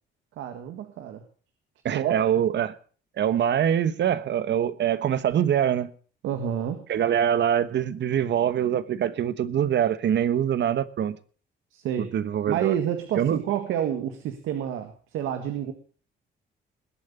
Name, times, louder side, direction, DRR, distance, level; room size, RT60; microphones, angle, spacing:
voice 1, 0.4-1.2 1.9-2.2 6.2-6.8 11.7-12.1 12.5-15.7, right 10 dB, 85° right, 1.8 m, -29 dB
voice 2, 1.8-2.7 3.2-5.9 6.9-11.2 12.1-12.8 13.2-13.4, right 9 dB, 65° right, 1.2 m, -24 dB
20.5 x 8.7 x 6.8 m
cardioid pair, 90°, 20 cm